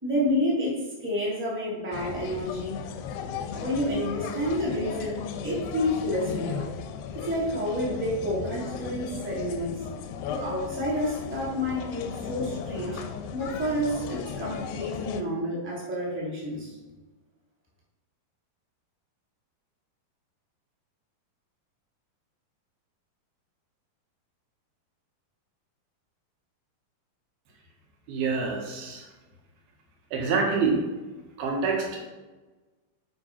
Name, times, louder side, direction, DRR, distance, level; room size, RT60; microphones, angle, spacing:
voice 1, 0.0-2.8 3.5-6.7 7.1-9.8 10.3-16.7, equal, 5° right, -6 dB, 1.8 m, -29 dB
sound 1, 1.9-15.2, left 7 dB, 85° left, 2.4 m, -36 dB
voice 2, 28.1-29.1 30.1-30.9 31.4-32.1, right 4 dB, 90° right, 0 dB, 3.4 m, -26 dB
8.6 x 5.3 x 5.9 m, 1.2 s
omnidirectional pair, 4.2 m